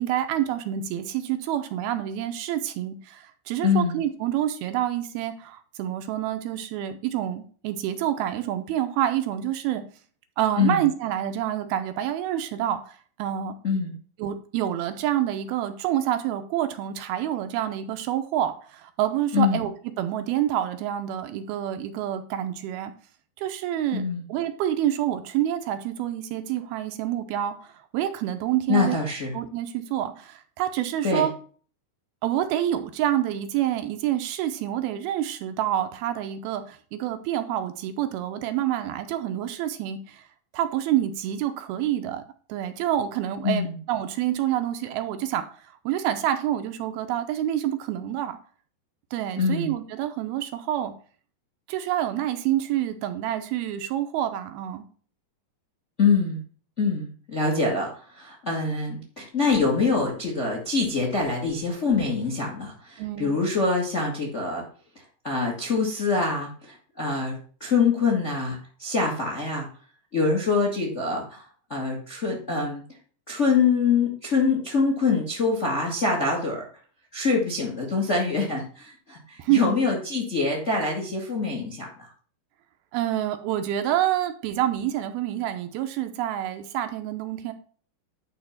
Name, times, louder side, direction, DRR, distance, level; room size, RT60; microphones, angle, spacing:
voice 1, 0.0-9.8 10.4-13.6 14.2-19.7 20.0-22.9 23.4-24.0 24.3-29.0 29.3-31.3 32.2-40.2 40.5-42.2 42.5-48.4 49.1-50.9 51.7-54.8 63.0-63.4 79.4-79.8 82.9-87.5, right 11 dB, 80° right, 8 dB, 2.6 m, -27 dB
voice 2, 3.6-3.9 10.6-10.8 13.6-13.9 19.3-19.6 23.9-24.2 28.7-29.3 31.0-31.3 43.4-43.7 49.4-49.7 56.0-56.4 56.8-64.6 65.2-67.3 67.6-69.7 70.1-72.8 73.3-76.6 77.1-82.1, left 4 dB, 35° left, 0 dB, 1.1 m, -25 dB
11.0 x 3.9 x 5.7 m, 0.43 s
omnidirectional pair, 4.6 m